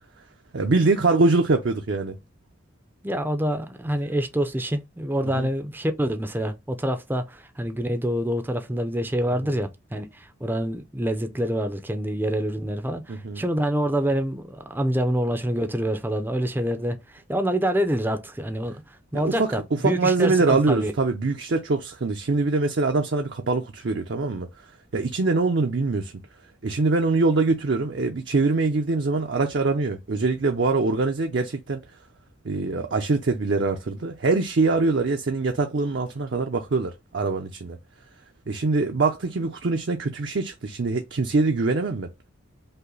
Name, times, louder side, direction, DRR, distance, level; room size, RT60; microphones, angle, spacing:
voice 1, 0.5-2.2 5.3-5.5 9.4-9.5 13.1-13.4 19.1-19.5 19.8-24.5 24.9-26.1 26.6-31.8 32.4-37.8 38.5-42.1, right 3 dB, 60° right, 0.5 m, -23 dB
voice 2, 3.0-20.9, equal, 10° right, 0.5 m, -26 dB
5.5 x 2.1 x 3.8 m
head